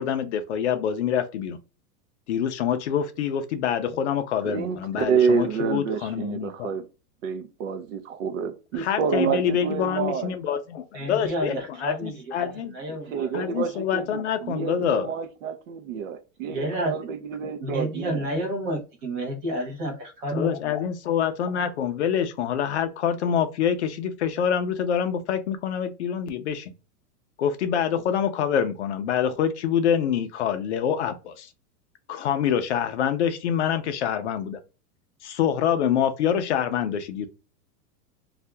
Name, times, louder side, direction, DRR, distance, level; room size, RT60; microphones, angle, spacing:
voice 1, 0.0-1.6 2.3-6.7 8.8-12.7 13.3-15.1 20.3-26.7 27.4-31.5 32.1-34.6 35.2-37.3, left 8 dB, 50° left, 0.4 m, -26 dB
voice 2, 4.4-6.8 7.2-10.4 12.9-18.3, right 6 dB, 55° right, 0.6 m, -28 dB
voice 3, 10.9-13.3 16.4-16.9 17.4-20.7, equal, 30° right, 0.9 m, -30 dB
2.7 x 2.4 x 3.3 m
supercardioid pair, 180°, 47 cm